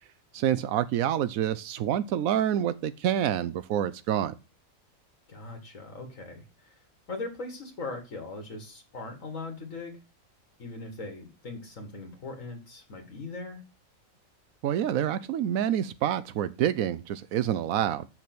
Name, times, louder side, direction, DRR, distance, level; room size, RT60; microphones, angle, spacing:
voice 1, 0.3-4.3 14.6-18.1, right 10 dB, 85° right, 1.0 m, -27 dB
voice 2, 5.3-6.7 7.1-10.0 10.6-13.6, left 3 dB, 70° left, 2.1 m, -40 dB
7.2 x 6.0 x 6.0 m
omnidirectional pair, 1.4 m